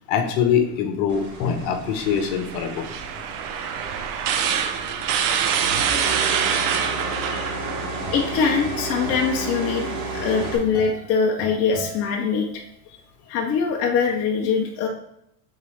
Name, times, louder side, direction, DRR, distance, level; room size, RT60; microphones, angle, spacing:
voice 1, 0.1-2.9 3.6-3.7 7.3-7.5, left 7 dB, 55° left, 7 dB, 1.1 m, -23 dB
sound 1, 1.1-10.6, right 2 dB, 75° right, 1.9 m, -33 dB
sound 2, 2.0-8.5, right 8 dB, 45° right, 0.6 m, -26 dB
sound 3, 7.4-12.9, right 1 dB, 10° left, 2.1 m, -40 dB
voice 2, 8.1-12.5 13.3-14.9, left 5 dB, 30° left, 1 dB, 0.7 m, -23 dB
7.2 x 4.0 x 3.3 m, 0.76 s
supercardioid pair, 130°, 47 cm